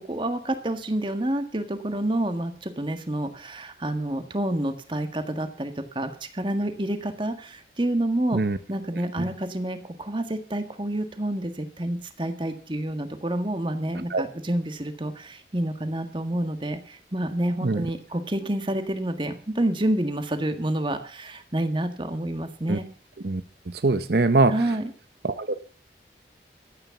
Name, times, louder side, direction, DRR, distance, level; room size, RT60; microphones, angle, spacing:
voice 1, 0.1-8.4 8.7-22.8 24.5-24.9, right 1 dB, 25° right, 8 dB, 1.6 m, -28 dB
voice 2, 23.8-24.6 25.2-25.6, right 3 dB, 65° right, 11 dB, 0.8 m, -22 dB
13.5 x 9.1 x 7.0 m, 0.42 s
head